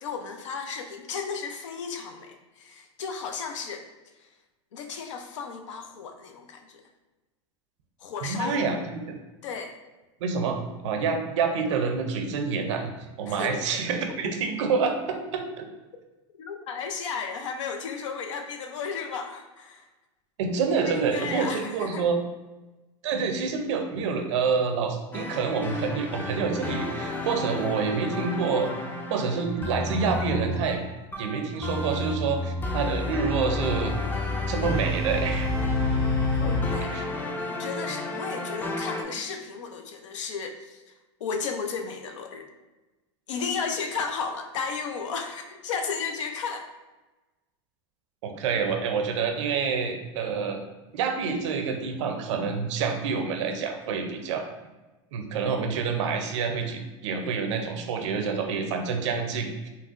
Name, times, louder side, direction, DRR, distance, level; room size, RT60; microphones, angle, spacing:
voice 1, 0.0-3.9 4.2-4.3 4.7-6.8 8.0-8.8 9.4-9.8 13.3-13.6 16.3-19.9 20.8-22.0 36.4-40.9 41.2-42.5 43.3-46.7, left 5 dB, 90° left, 6 dB, 0.5 m, -34 dB
voice 2, 8.2-9.0 10.2-12.9 13.2-15.7 20.4-22.2 23.0-28.7 29.1-30.8 31.2-33.9 34.5-35.5 36.9-37.1 48.2-50.6 50.9-54.5 55.1-59.7, right 5 dB, 80° right, 5 dB, 0.5 m, -27 dB
sound 1, 25.1-39.0, left 2 dB, 10° left, 0.4 m, -30 dB
4.0 x 2.1 x 2.4 m, 1.1 s
supercardioid pair, 110°, 15 cm